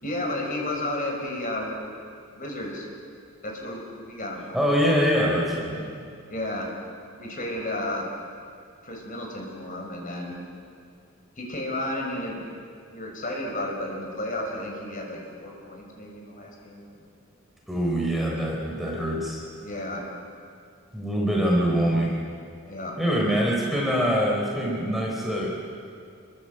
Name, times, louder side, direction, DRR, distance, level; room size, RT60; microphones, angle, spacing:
voice 1, 0.0-1.7 2.3-2.9 3.4-4.6 6.3-6.7 7.2-8.1 8.8-10.4 11.4-12.6 12.9-17.0 19.6-20.1 22.7-23.0, left 1 dB, 40° left, 0 dB, 5.3 m, -32 dB
voice 2, 4.5-5.9 17.7-19.4 20.9-22.2 23.0-25.5, equal, ahead, -3 dB, 4.1 m, -24 dB
27.5 x 22.5 x 7.8 m, 2.3 s
head